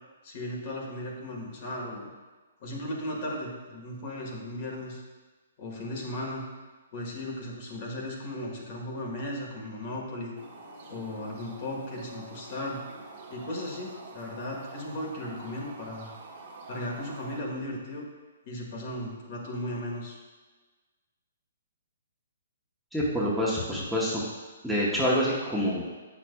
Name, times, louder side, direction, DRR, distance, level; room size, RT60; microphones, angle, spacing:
voice 1, 0.2-2.1 2.6-5.0 5.6-6.4 6.9-10.3 10.9-12.8 13.3-16.1 16.7-18.0 18.4-20.2, left 1 dB, 45° left, -1 dB, 1.5 m, -36 dB
sound 1, 10.4-17.4, right 3 dB, 40° right, 1.2 m, -46 dB
voice 2, 22.9-24.2 24.6-25.8, equal, ahead, -8 dB, 0.9 m, -26 dB
8.0 x 5.9 x 2.3 m, 1.3 s
hypercardioid pair, 145°, 0 cm